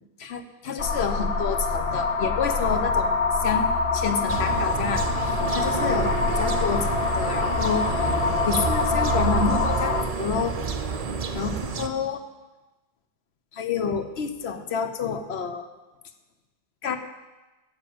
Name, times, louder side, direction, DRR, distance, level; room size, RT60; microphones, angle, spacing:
voice 1, 0.2-3.1 3.4-7.9 8.5-10.6 11.3-12.2 13.5-15.7 16.8-17.0, left 6 dB, 85° left, 8 dB, 1.1 m, -29 dB
sound 1, 0.8-10.0, left 4 dB, 65° left, 1.0 m, -25 dB
sound 2, 4.3-11.9, right 5 dB, 40° right, 0.7 m, -29 dB
9.9 x 6.7 x 8.6 m, 1.1 s
omnidirectional pair, 1.1 m